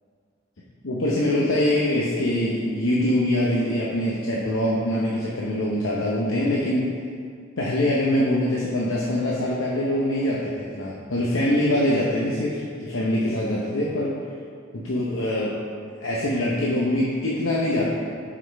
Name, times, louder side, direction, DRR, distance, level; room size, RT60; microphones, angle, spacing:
voice 1, 0.8-6.9 7.6-14.1 14.7-15.5 16.0-17.9, left 1 dB, 80° left, -4 dB, 0.8 m, -23 dB
7.7 x 6.1 x 3.4 m, 2.2 s
head